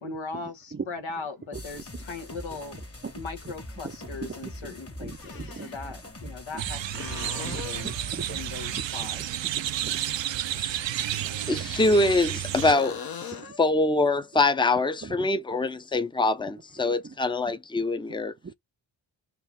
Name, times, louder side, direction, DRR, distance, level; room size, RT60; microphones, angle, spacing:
voice 1, 0.0-2.8 3.1-8.0 8.3-9.2, left 4 dB, 75° left, 1.2 m, -39 dB
sound 1, 1.5-8.8, left 1 dB, 30° left, 1.5 m, -43 dB
voice 2, 4.4-4.7 5.0-5.7 6.5-6.6 7.5-8.4 8.8-8.9 9.8-10.0 11.0-11.3 11.6-11.7 13.4-13.5 15.0-15.3 17.0-17.1 18.4-18.5, right 5 dB, 25° right, 0.5 m, -39 dB
sound 2, 5.1-5.9 6.9-8.1 11.2-12.3 12.6-13.6 17.3-17.4, left 7 dB, 50° left, 0.9 m, -40 dB
sound 3, 6.6-12.7, right 11 dB, 65° right, 0.6 m, -31 dB
voice 3, 11.5-13.0 13.6-18.3, left 2 dB, 10° left, 0.6 m, -24 dB
4.5 x 2.5 x 3.5 m
cardioid pair, 45°, 48 cm